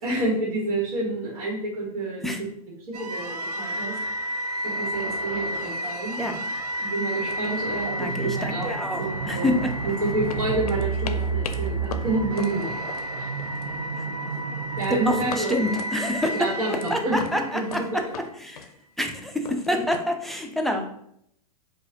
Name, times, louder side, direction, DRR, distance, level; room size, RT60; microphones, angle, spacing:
voice 1, 0.0-2.3 2.9-3.9 4.6-6.2 6.8-8.7 9.0-9.5 9.8-12.7 13.2-13.3 14.8-15.6 16.3-18.1 19.7-19.9, right 2 dB, 60° right, -3 dB, 1.4 m, -28 dB
sound 1, 2.9-18.1, right 2 dB, 80° right, 0.6 m, -31 dB
sound 2, 5.7-5.8 6.2-6.5 6.8-7.0 7.3-8.1 8.4-9.9 10.3-13.8 14.0-14.4 14.8-16.9 17.2-20.0, left 6 dB, 70° left, 0.5 m, -40 dB
voice 2, 8.0-9.7 14.9-16.3 16.7-18.0 18.4-18.7 19.0-20.9, left 1 dB, ahead, 2 dB, 0.4 m, -27 dB
4.7 x 2.5 x 2.8 m, 0.71 s
hypercardioid pair, 105°, 20 cm